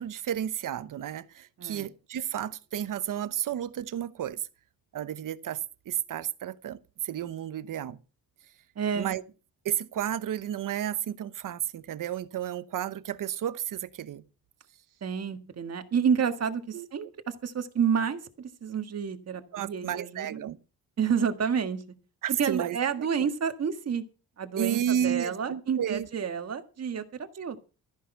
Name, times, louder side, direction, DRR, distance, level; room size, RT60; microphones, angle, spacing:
voice 1, 0.0-4.5 4.9-5.6 5.8-8.0 9.0-9.2 9.6-14.2 16.7-16.9 19.5-20.6 22.2-23.3 24.6-26.1, right 10 dB, 60° right, 1.0 m, -32 dB
voice 2, 8.7-9.1 15.0-20.4 21.0-21.8 22.4-24.0 24.4-27.7, right 7 dB, 40° right, 1.7 m, -29 dB
14.0 x 10.5 x 5.5 m
cardioid pair, 145°, 37 cm